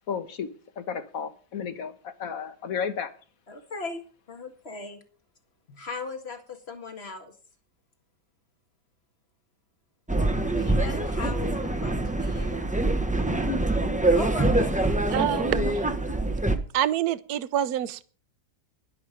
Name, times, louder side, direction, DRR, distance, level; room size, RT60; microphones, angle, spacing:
voice 1, 0.1-0.5 0.8-3.1, left 6 dB, 55° left, 1.5 m, -33 dB
voice 2, 3.5-4.0 4.3-5.0 5.7-7.3 10.5-12.6 14.2-14.7, left 3 dB, 35° left, 2.0 m, -38 dB
sound 1, 10.1-16.6, right 2 dB, 5° right, 0.6 m, -25 dB
voice 3, 15.1-15.8 16.7-18.1, right 11 dB, 65° right, 1.1 m, -27 dB
11.5 x 11.0 x 5.1 m
omnidirectional pair, 1.9 m